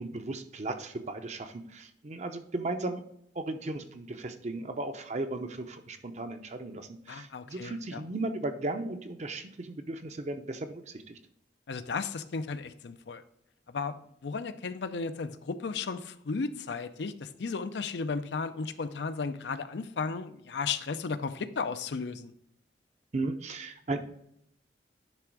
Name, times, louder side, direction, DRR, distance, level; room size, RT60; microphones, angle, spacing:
voice 1, 0.0-3.0 3.3-11.1 23.1-24.0, right 2 dB, 40° right, 7 dB, 0.7 m, -36 dB
voice 2, 7.1-8.0 11.7-13.2 13.7-14.0 14.2-22.3, left 4 dB, 70° left, 11 dB, 0.5 m, -34 dB
10.0 x 3.5 x 4.6 m, 0.74 s
head